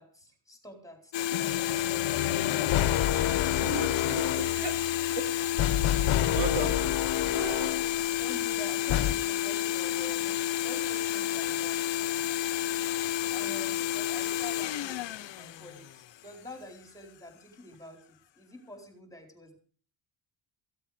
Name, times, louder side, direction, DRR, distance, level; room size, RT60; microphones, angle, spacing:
voice 1, 0.0-2.0 8.2-19.6, left 1 dB, 5° left, 4.5 m, -47 dB
sound 1, 1.1-16.3, left 12 dB, 65° left, 1.1 m, -30 dB
sound 2, 1.3-8.0 8.9-9.2, left 12 dB, 90° left, 1.1 m, -29 dB
voice 2, 3.2-4.8 5.2-5.3 6.3-7.0 7.3-7.8 13.0-13.1, right 4 dB, 65° right, 3.8 m, -36 dB
16.0 x 15.5 x 5.1 m
cardioid pair, 155°, 48 cm